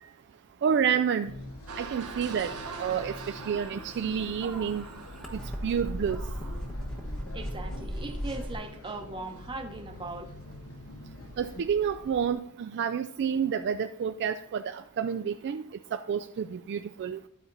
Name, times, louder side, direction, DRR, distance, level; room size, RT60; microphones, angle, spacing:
voice 1, 0.6-1.3 1.8-2.5 2.8-4.8 5.3-6.2 11.4-15.7 15.9-17.2, right 7 dB, 50° right, 9 dB, 0.3 m, -29 dB
sound 1, 1.2-12.3, left 2 dB, 70° left, 0.9 m, -46 dB
sound 2, 1.7-8.7, right 4 dB, 80° right, 1.0 m, -44 dB
sound 3, 3.4-8.6, equal, 5° left, 1.0 m, -37 dB
voice 2, 7.3-10.3, right 2 dB, 20° right, 5 dB, 0.9 m, -39 dB
12.0 x 4.3 x 3.9 m, 0.65 s
head